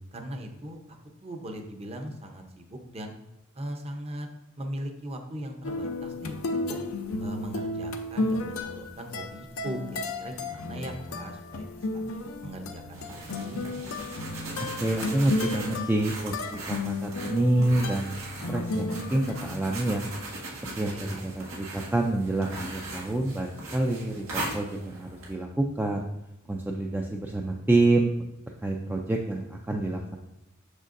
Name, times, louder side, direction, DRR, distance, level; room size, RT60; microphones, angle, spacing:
voice 1, 0.1-3.1 3.5-4.3 4.6-6.8 7.2-12.0 12.4-13.6 20.9-21.3, equal, 30° right, 4 dB, 0.7 m, -39 dB
sound 1, 5.6-19.5, left 2 dB, 85° left, 0.6 m, -33 dB
sound 2, 12.9-25.3, right 2 dB, 90° right, 1.6 m, -39 dB
voice 2, 14.6-18.1 18.5-20.0 20.8-24.2 24.5-26.1 26.5-28.1 28.6-30.2, right 2 dB, 10° right, 0 dB, 0.3 m, -27 dB
6.4 x 6.1 x 2.6 m, 0.90 s
head